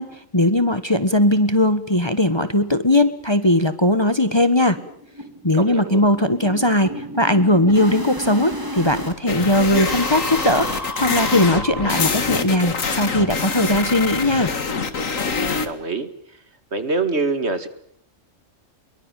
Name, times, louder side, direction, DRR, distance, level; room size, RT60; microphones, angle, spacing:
voice 1, 0.0-4.8 5.4-14.5, left 1 dB, 20° left, 11 dB, 1.3 m, -19 dB
sound 1, 2.3-2.4 2.7-2.8 3.1-3.2 3.5-3.7 3.9-9.1 9.5-12.3, right 1 dB, 15° right, 3.1 m, -32 dB
voice 2, 5.5-6.0 15.5-16.1 16.7-17.7, right 3 dB, 55° right, 11 dB, 2.3 m, -25 dB
sound 2, 9.3-15.7, left 4 dB, 85° left, 2.3 m, -25 dB
24.5 x 23.0 x 9.1 m, 0.65 s
omnidirectional pair, 1.3 m